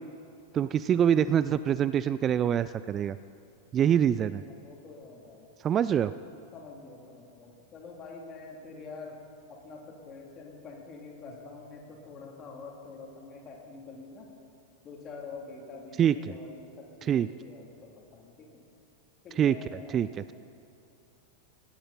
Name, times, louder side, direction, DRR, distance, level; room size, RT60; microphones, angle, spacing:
voice 1, 0.5-3.2 3.7-4.4 5.6-6.1 16.0-16.1 17.0-17.3 19.4-20.3, right 9 dB, 25° right, 15 dB, 0.3 m, -25 dB
voice 2, 4.4-5.5 6.5-9.2 9.5-14.3 14.8-18.6 19.2-20.3, left 4 dB, 30° left, 0 dB, 3.2 m, -46 dB
19.5 x 17.0 x 4.3 m, 2.5 s
figure-of-eight pair, 90°, 0 cm